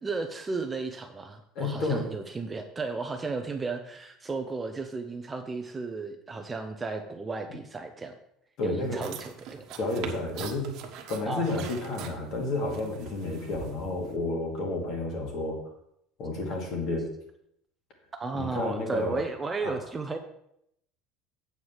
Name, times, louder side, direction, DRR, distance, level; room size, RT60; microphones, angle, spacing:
voice 1, 0.0-8.1 8.6-9.6 11.3-11.5 18.2-20.2, right 3 dB, 15° right, 6 dB, 0.6 m, -34 dB
voice 2, 1.5-2.1 8.6-9.2 9.8-10.7 11.1-15.6 16.2-17.1 18.3-19.2 19.6-19.7, left 2 dB, 45° left, 1 dB, 2.5 m, -31 dB
sound 1, 8.8-14.2, right 6 dB, 50° right, 1.3 m, -43 dB
7.9 x 4.8 x 7.2 m, 0.76 s
cardioid pair, 160°, 0 cm